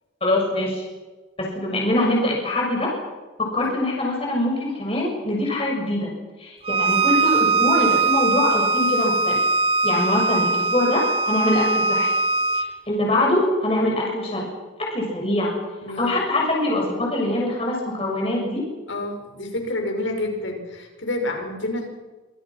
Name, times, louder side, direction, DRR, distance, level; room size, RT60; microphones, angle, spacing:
voice 1, 0.2-0.8 1.4-2.9 3.4-6.1 6.4-9.4 9.8-12.1 12.5-14.5 14.8-15.5 16.0-18.6, left 1 dB, 30° left, -1 dB, 6.7 m, -23 dB
Bowed string instrument, 6.6-12.7, right 3 dB, 30° right, 1.0 m, -21 dB
voice 2, 15.8-16.1 18.9-21.9, left 1 dB, 80° left, 4 dB, 6.3 m, -28 dB
26.0 x 26.0 x 6.1 m, 1.2 s
head